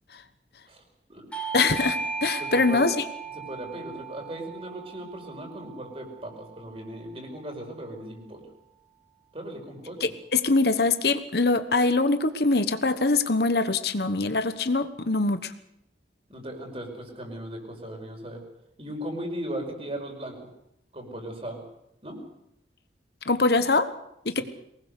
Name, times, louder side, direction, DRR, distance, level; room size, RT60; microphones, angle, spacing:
Bell / Doorbell, 1.3-6.5, right 4 dB, 5° left, 3.6 m, -36 dB
voice 1, 1.5-3.0 10.0-15.5 23.3-23.9 24.2-24.4, left 3 dB, 60° left, 11 dB, 1.1 m, -23 dB
voice 2, 2.4-2.9 3.3-8.4 9.3-10.1 16.3-18.4 18.8-20.5 20.9-21.6 22.0-22.2 24.3-24.4, right 1 dB, 35° right, 3 dB, 5.3 m, -37 dB
23.0 x 19.5 x 6.6 m, 0.78 s
head